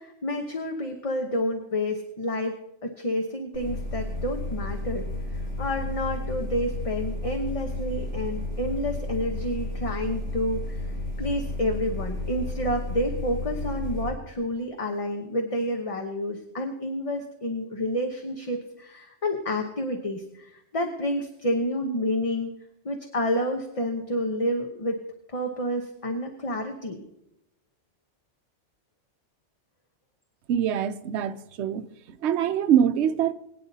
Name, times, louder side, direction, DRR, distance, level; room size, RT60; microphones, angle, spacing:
voice 1, 0.0-10.9 11.2-22.5 22.8-25.0 25.3-27.0, left 1 dB, 30° left, 1.0 m, -29 dB
sound 1, 3.5-14.1, left 2 dB, 75° left, 5.6 m, -32 dB
voice 2, 30.5-31.8 32.2-33.3, right 9 dB, 70° right, 0.9 m, -24 dB
21.5 x 9.6 x 2.7 m
omnidirectional pair, 1.2 m